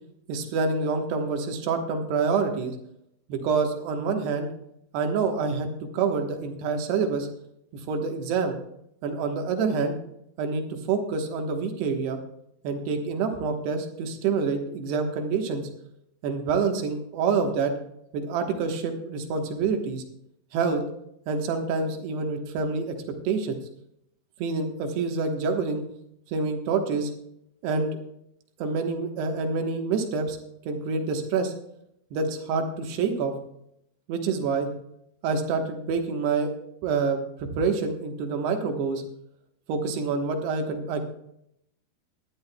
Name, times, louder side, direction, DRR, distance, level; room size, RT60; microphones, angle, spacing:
voice 1, 0.3-2.8 3.3-4.5 4.9-5.7 5.9-7.3 7.9-8.6 9.0-10.0 10.4-12.2 12.6-15.7 16.2-17.7 18.1-20.0 20.5-20.8 21.3-23.0 23.3-23.6 24.4-25.8 26.3-27.1 27.6-28.0 28.6-30.4 30.7-31.5 32.1-33.3 34.1-34.7 35.2-36.5 36.8-39.0 39.7-41.0, right 4 dB, 85° right, 4 dB, 3.4 m, -27 dB
18.5 x 11.5 x 2.3 m, 0.76 s
omnidirectional pair, 4.6 m